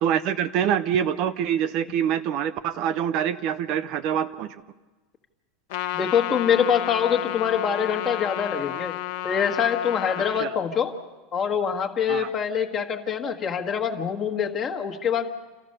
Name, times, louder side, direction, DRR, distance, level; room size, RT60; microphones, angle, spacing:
voice 1, 0.0-4.6 10.4-10.5 12.1-12.3, right 9 dB, 40° right, 12 dB, 0.6 m, -25 dB
Trumpet, 5.7-10.4, left 14 dB, 60° left, 0.9 m, -31 dB
voice 2, 5.9-9.0 9.2-10.9 11.3-15.3, left 7 dB, 25° left, 3 dB, 1.4 m, -25 dB
28.5 x 14.5 x 6.6 m, 1.2 s
supercardioid pair, 170°, 0 cm